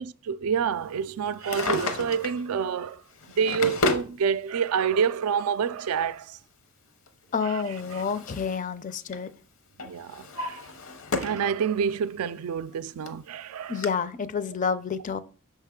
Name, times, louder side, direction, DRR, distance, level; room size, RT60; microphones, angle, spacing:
voice 1, 0.0-3.0 3.4-6.4 7.4-7.6 7.9-8.0 9.8-10.6 11.2-13.8, right 7 dB, 80° right, 0.4 m, -28 dB
Drawer open or close, 1.3-2.4 3.2-4.1 5.2-5.3 7.1-8.6 8.9-9.3 9.8-11.5 11.9-12.0 12.7-12.8 13.1-13.2 13.8-13.9, left 3 dB, 65° left, 0.7 m, -31 dB
voice 2, 7.3-9.3 13.7-15.2, left 6 dB, 35° left, 0.4 m, -29 dB
6.4 x 5.5 x 3.6 m
head